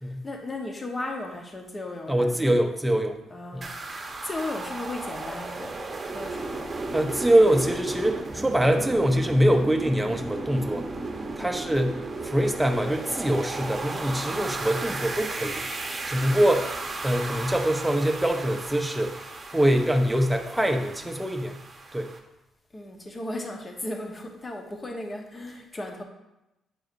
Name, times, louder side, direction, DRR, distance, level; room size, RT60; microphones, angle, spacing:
voice 1, 0.2-2.6 3.3-5.8 6.1-6.7 7.4-7.5 11.4-11.6 22.7-26.0, left 2 dB, 25° left, 2 dB, 1.1 m, -36 dB
voice 2, 2.1-3.2 3.5-3.7 6.9-10.9 11.4-15.6 16.0-16.7 17.0-21.6 21.9-22.1, right 1 dB, 5° right, 4 dB, 0.8 m, -24 dB
sound 1, 3.6-22.2, right 3 dB, 30° right, 1.0 m, -35 dB
8.9 x 4.7 x 2.6 m, 0.92 s
cardioid pair, 90°, 0 cm